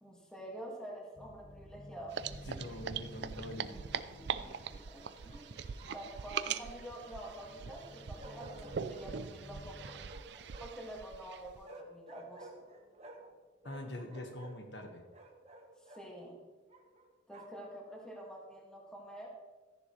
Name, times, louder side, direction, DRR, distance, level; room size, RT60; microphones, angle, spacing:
voice 1, 0.0-2.2 4.4-5.6 5.9-10.0 10.6-12.7 15.8-16.4 17.3-19.3, right 1 dB, 5° left, -3 dB, 2.0 m, -48 dB
sound 1, 1.1-10.1, equal, 35° left, 1.3 m, -53 dB
sound 2, 2.1-11.6, right 7 dB, 65° right, 0.4 m, -42 dB
voice 2, 2.5-3.8 13.6-15.0, left 1 dB, 65° left, 4 dB, 1.5 m, -44 dB
Bark, 2.7-3.3 5.8-6.9 8.2-9.1 9.8-10.9 11.6-13.4 13.6-16.1 16.7-17.7, right 2 dB, 35° right, 1.4 m, -53 dB
14.0 x 10.5 x 3.2 m, 1.3 s
head